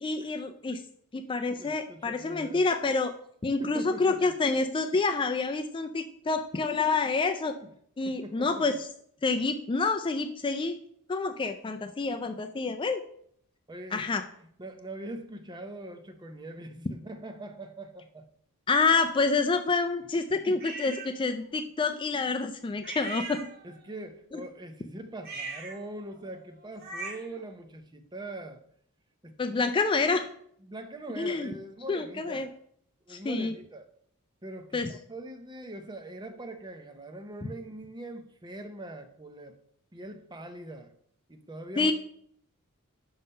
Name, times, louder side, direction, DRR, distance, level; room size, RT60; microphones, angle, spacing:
voice 1, 0.0-0.8 1.1-3.1 3.4-7.6 8.0-8.9 9.2-10.8 11.1-13.0 13.9-14.2 18.7-23.4 24.3-24.4 29.4-30.3 31.2-31.5 31.9-32.5 33.1-33.5 34.7-34.9 41.8-41.9, left 3 dB, 20° left, 8 dB, 0.3 m, -28 dB
voice 2, 1.6-2.6 3.6-4.3 7.6-7.7 8.0-8.7 13.7-14.1 14.6-18.3 20.3-20.6 23.6-28.6 29.2-29.7 30.1-30.2 30.6-32.5 33.1-33.9 34.4-39.5 39.9-40.9 41.3-41.9, right 1 dB, 20° right, 6 dB, 0.7 m, -42 dB
sound 1, 20.6-21.1 22.8-23.9 25.2-27.4, right 3 dB, 45° right, 1.3 m, -40 dB
5.6 x 5.5 x 5.4 m, 0.65 s
head